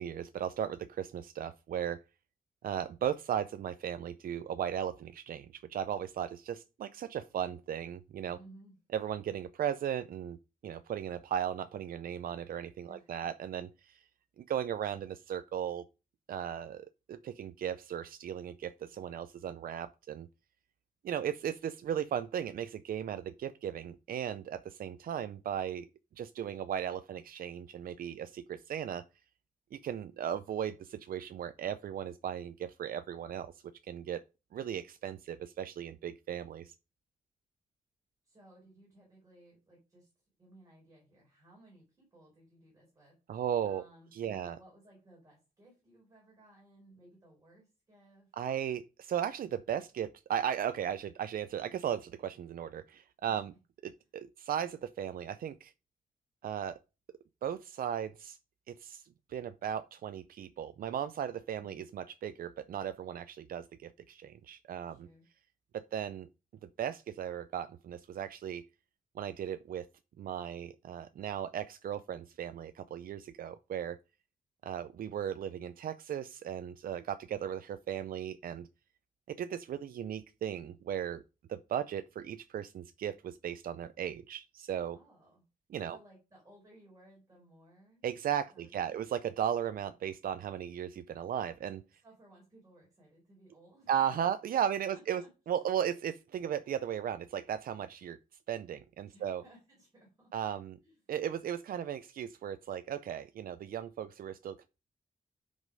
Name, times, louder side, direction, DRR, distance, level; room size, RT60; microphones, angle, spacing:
voice 1, 0.0-2.0 2.6-8.4 8.9-10.4 10.6-14.0 14.4-15.8 16.3-20.3 21.0-25.9 26.2-29.0 29.7-33.5 33.9-34.2 34.5-36.7 43.3-43.8 44.1-44.6 48.3-53.5 53.8-55.7 56.4-56.8 57.4-58.4 58.7-59.0 59.3-65.1 65.7-66.3 66.8-68.6 69.2-69.9 70.2-74.0 74.6-78.7 79.3-81.2 81.5-85.0 85.7-86.0 88.0-91.8 93.9-95.2 95.5-98.2 98.5-99.4 100.3-100.8 101.1-104.7, right 9 dB, 85° right, 0.5 m, -36 dB
voice 2, 8.3-8.7 12.8-13.2 38.2-40.1 40.4-48.3 53.2-53.4 61.6-61.8 64.8-65.2 84.9-85.4 85.9-88.0 88.5-89.0 92.0-95.7 99.0-100.3 100.8-101.0, right 1 dB, 25° right, 4.5 m, -60 dB
9.6 x 5.3 x 5.2 m
wide cardioid pair, 180°, 15 cm